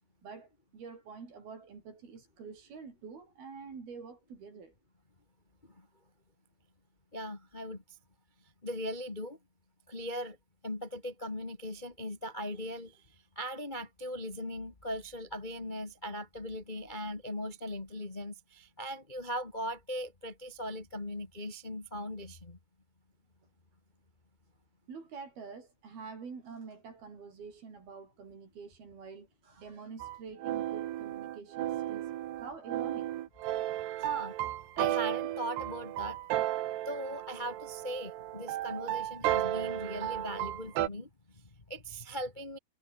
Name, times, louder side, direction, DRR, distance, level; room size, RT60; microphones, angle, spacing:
voice 1, 0.2-4.8 24.9-32.1 32.4-33.1, right 5 dB, 65° right, 7.1 m, -47 dB
voice 2, 7.1-7.8 8.6-9.4 9.9-10.4 10.6-22.6 33.6-34.3 34.7-36.2 36.8-42.6, equal, 50° left, 0.5 m, -39 dB
sound 1, 30.0-40.9, right 13 dB, 80° right, 3.6 m, -34 dB
omnidirectional pair, 4.7 m